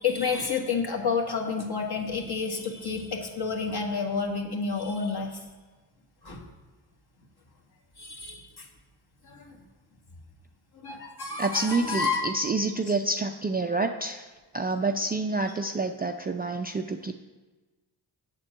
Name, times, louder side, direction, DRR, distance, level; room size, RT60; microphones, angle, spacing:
voice 1, 0.0-5.4 6.2-6.4 8.0-8.7 9.2-9.6 10.7-12.2, left 5 dB, 50° left, 1 dB, 1.6 m, -30 dB
voice 2, 11.4-14.3 14.5-17.1, right 3 dB, 20° right, 5 dB, 0.3 m, -28 dB
7.8 x 4.4 x 6.1 m, 1.2 s
supercardioid pair, 50°, 50 cm